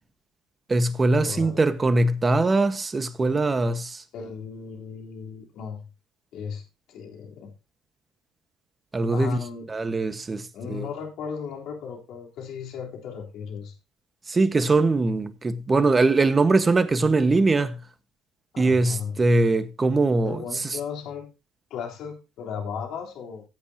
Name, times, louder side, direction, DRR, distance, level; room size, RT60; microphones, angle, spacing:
voice 1, 0.7-4.0 8.9-9.4 9.7-10.9 14.3-17.8 18.6-20.4, right 3 dB, 25° right, 1.4 m, -22 dB
voice 2, 1.2-1.6 4.1-5.9 6.3-6.6 6.9-7.5 9.1-9.7 10.5-13.7 18.5-19.2 20.3-21.3 21.7-23.4, left 6 dB, 65° left, 3.7 m, -36 dB
16.5 x 8.5 x 2.9 m
hypercardioid pair, 70°, 0 cm